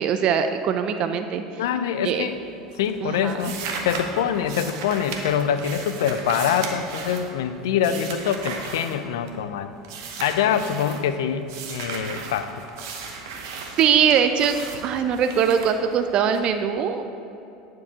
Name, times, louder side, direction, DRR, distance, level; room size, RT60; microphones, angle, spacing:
voice 1, 0.0-1.4 2.0-2.3 3.0-3.5 13.8-17.0, right 7 dB, 45° right, 8 dB, 0.4 m, -22 dB
voice 2, 1.6-2.4 2.8-3.6 3.8-9.7 10.2-11.4 11.7-12.6, left 8 dB, 70° left, 10 dB, 0.4 m, -24 dB
sound 1, 2.0-2.5 2.7-9.5 9.8-11.0 11.5-16.4, right 4 dB, 65° right, 0.9 m, -36 dB
9.5 x 4.7 x 4.6 m, 2.7 s
hypercardioid pair, 75°, 2 cm